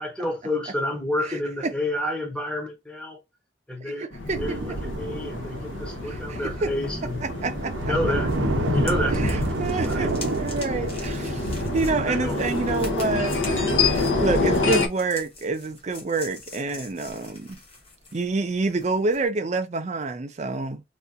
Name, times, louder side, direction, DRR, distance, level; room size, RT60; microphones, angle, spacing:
voice 1, 0.0-3.2 3.7-4.1 4.4-7.2 7.8-8.3 8.7-10.1 12.1-12.4, left 1 dB, 5° left, 0.8 m, -30 dB
voice 2, 1.3-1.7 3.8-4.4 6.0-6.7 7.2-7.9 9.1-10.1 10.4-17.6 18.1-20.8, right 3 dB, 35° right, 0.4 m, -28 dB
sound 1, 4.1-14.9, left 3 dB, 80° left, 0.7 m, -27 dB
sound 2, 4.3-14.7, right 3 dB, 85° right, 0.6 m, -31 dB
sound 3, 8.3-19.3, left 3 dB, 30° left, 1.0 m, -44 dB
2.7 x 2.4 x 3.5 m
head